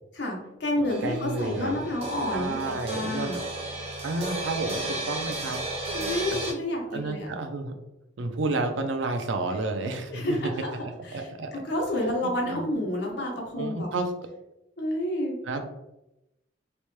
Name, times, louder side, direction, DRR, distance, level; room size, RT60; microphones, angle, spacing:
voice 1, 0.1-3.4 5.9-7.3 10.1-10.8 11.0-13.9 14.8-15.4, left 1 dB, 65° left, 0 dB, 0.8 m, -30 dB
sound 1, 0.9-6.5, right 2 dB, 35° right, 0.5 m, -34 dB
voice 2, 1.0-1.9 2.3-3.3 4.0-5.6 6.9-7.7 8.2-10.4 10.8-11.5 12.2-12.6 13.6-14.1 15.5-15.6, right 3 dB, 85° right, 6 dB, 0.4 m, -31 dB
2.9 x 2.1 x 3.1 m, 0.90 s
head